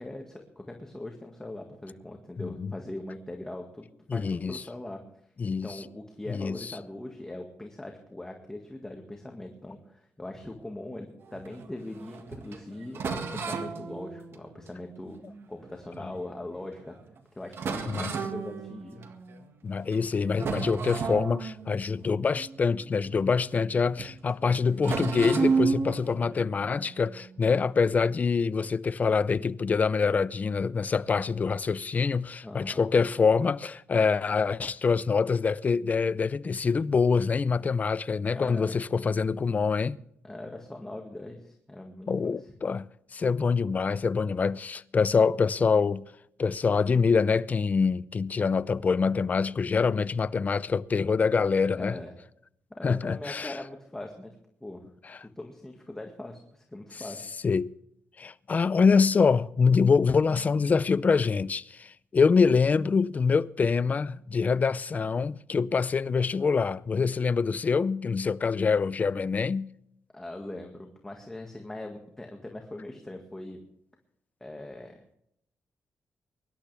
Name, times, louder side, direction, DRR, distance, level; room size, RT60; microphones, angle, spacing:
voice 1, 0.0-5.0 5.6-15.2 15.5-17.0 17.3-19.0 32.4-32.8 38.3-38.7 40.2-42.4 51.8-52.1 52.7-54.3 54.6-54.8 55.2-57.3 70.1-73.6 74.4-75.0, left 1 dB, 10° left, 1.9 m, -41 dB
voice 2, 2.4-2.7 4.1-4.6 5.4-5.7 6.3-6.7 16.0-16.1 17.9-18.1 19.6-40.0 42.1-42.9 43.1-46.0 46.4-52.0 52.8-53.5 55.0-55.2 57.4-57.7 58.2-69.7, left 5 dB, 35° left, 0.5 m, -25 dB
sound 1, 11.2-16.2 16.8-16.9 17.2-17.3 17.5-19.5 19.8-20.1 20.3-23.7 24.0-24.2 24.8-27.8, right 5 dB, 55° right, 1.9 m, -33 dB
24.0 x 11.5 x 3.4 m
cardioid pair, 125°, 5 cm